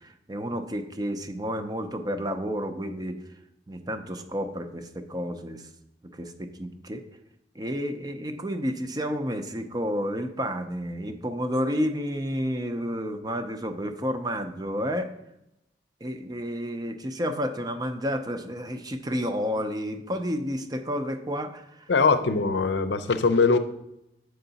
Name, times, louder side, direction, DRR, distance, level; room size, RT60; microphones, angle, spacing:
voice 1, 0.0-3.2 3.7-5.7 6.1-7.0 7.6-15.1 16.0-21.9, equal, 20° right, 8 dB, 0.5 m, -31 dB
voice 2, 21.9-23.6, left 4 dB, 80° left, 10 dB, 0.6 m, -21 dB
7.9 x 4.7 x 4.0 m, 0.83 s
head